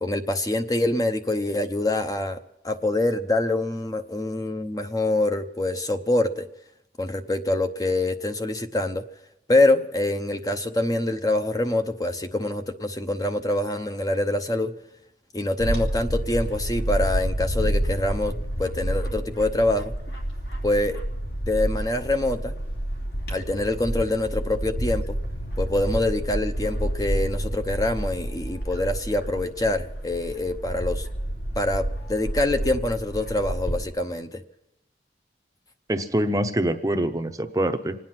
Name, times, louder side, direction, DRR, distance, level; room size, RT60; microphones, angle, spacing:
voice 1, 0.0-2.4 2.6-6.5 7.0-9.0 9.5-14.7 15.3-18.3 18.6-19.9 20.6-21.0 21.5-22.5 23.3-25.2 25.6-31.1 31.5-34.4, left 2 dB, 20° left, 7 dB, 0.7 m, -25 dB
Bird / Wind, 15.6-33.9, right 1 dB, 60° left, 2.9 m, -29 dB
voice 2, 35.9-38.0, right 1 dB, 20° right, 7 dB, 0.7 m, -24 dB
26.0 x 9.5 x 5.8 m, 0.87 s
head